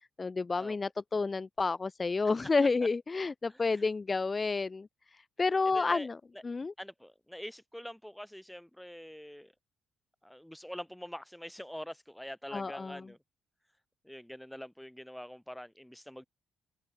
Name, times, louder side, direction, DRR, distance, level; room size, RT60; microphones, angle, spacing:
voice 1, 0.2-4.9 5.4-6.2 6.4-6.7 12.5-13.0, left 4 dB, 30° left, 1.3 m, -30 dB
voice 2, 3.5-3.8 5.7-6.1 6.8-9.5 10.2-13.2 14.0-16.3, equal, 5° left, 2.6 m, -45 dB
cardioid pair, 90°, 0 cm